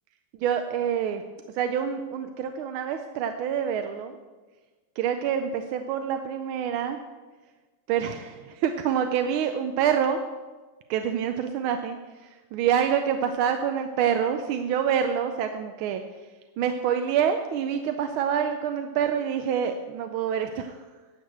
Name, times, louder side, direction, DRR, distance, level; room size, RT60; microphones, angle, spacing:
voice 1, 0.4-1.2 1.5-4.1 5.0-7.0 7.9-10.2 10.9-12.0 12.2-16.0 16.6-20.8, right 8 dB, 80° right, 7 dB, 1.5 m, -26 dB
10.5 x 6.6 x 7.7 m, 1.3 s
omnidirectional pair, 2.3 m